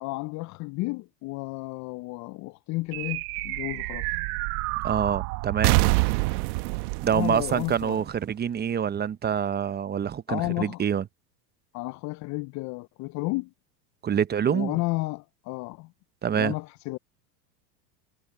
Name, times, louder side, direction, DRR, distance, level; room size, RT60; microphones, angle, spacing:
voice 1, 0.0-4.1 7.1-8.0 10.3-10.8 11.7-13.5 14.5-15.9 16.3-17.0, left 23 dB, 35° left, 0.5 m, -32 dB
sound 1, 2.9-8.6, right 26 dB, 60° right, 1.3 m, -27 dB
voice 2, 4.8-5.8 7.0-11.0 14.0-14.8 16.2-16.5, right 8 dB, 20° right, 0.8 m, -26 dB
hypercardioid pair, 105°, 50 cm